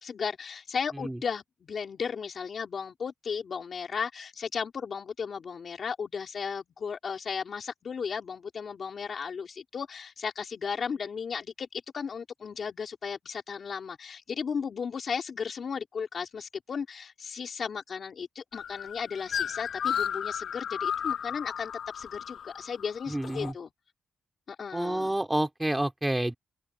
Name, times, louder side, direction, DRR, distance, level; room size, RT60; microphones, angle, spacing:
voice 1, 0.0-23.7 24.5-25.1, left 6 dB, 50° left, 3.3 m, -35 dB
sound 1, 18.5-23.5, left 8 dB, 70° left, 6.2 m, -33 dB
voice 2, 23.1-23.5 24.7-26.3, right 1 dB, 10° right, 2.9 m, -29 dB
open air
wide cardioid pair, 135°, 0 cm